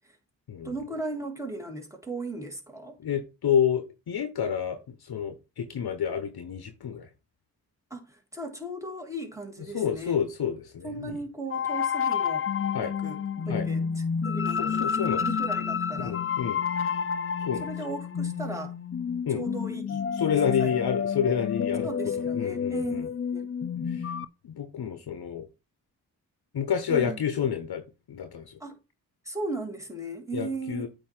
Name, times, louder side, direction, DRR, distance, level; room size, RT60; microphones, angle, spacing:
voice 1, 0.6-3.0 7.9-10.2 10.8-12.5 12.8-16.2 17.6-18.7 19.3-20.3 20.6-20.8 21.8-23.5 26.9-27.2 28.6-28.8 29.2-30.9, right 2 dB, 10° right, 2.3 m, -37 dB
voice 2, 3.0-7.1 9.7-11.1 12.7-12.9 13.5-13.7 14.6-15.3 16.0-16.6 17.4-17.7 19.3-19.4 20.1-21.9 22.3-23.1 23.9-24.0 24.4-25.5 26.5-27.8 28.1-28.5 30.3-30.9, left 8 dB, 70° left, 1.0 m, -29 dB
sound 1, 11.5-24.2, left 7 dB, 35° left, 0.5 m, -30 dB
8.5 x 3.0 x 5.8 m
cardioid pair, 45°, 38 cm